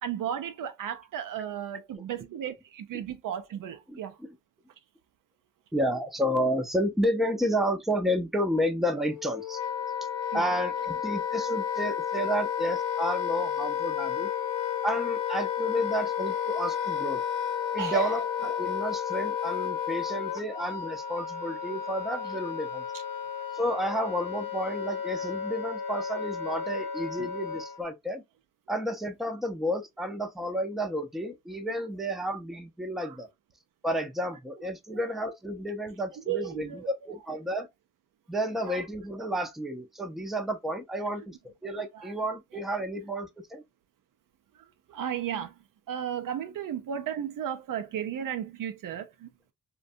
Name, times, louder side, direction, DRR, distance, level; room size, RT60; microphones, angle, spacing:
voice 1, 0.0-4.2 10.3-10.5 17.8-18.2 27.2-27.3 33.0-33.2 34.6-35.0 36.1-36.9 38.7-38.8 41.9-42.1 42.5-42.6 44.5-45.5 45.9-49.3, right 9 dB, 70° right, 0.5 m, -35 dB
voice 2, 5.7-9.6 10.3-14.3 14.8-17.2 17.7-22.8 23.5-28.2 28.7-33.3 33.8-37.7 38.3-43.6, equal, ahead, 0.5 m, -31 dB
Wind instrument woodwind instrument, 9.0-27.8, left 8 dB, 75° left, 0.8 m, -32 dB
2.5 x 2.2 x 2.5 m
cardioid pair, 60°, 35 cm